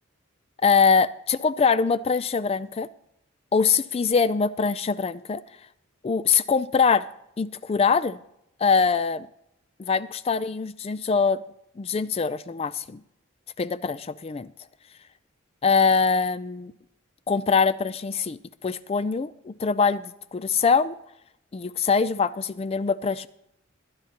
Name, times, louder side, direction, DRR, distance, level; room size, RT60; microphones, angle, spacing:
voice 1, 0.6-2.9 3.5-5.4 6.0-7.1 7.4-8.2 8.6-9.3 9.8-11.4 11.8-13.0 13.6-14.5 15.6-16.7 17.3-20.0 20.3-20.9 21.5-23.3, left 5 dB, 30° left, 15 dB, 0.3 m, -23 dB
21.5 x 10.5 x 2.9 m, 0.80 s
head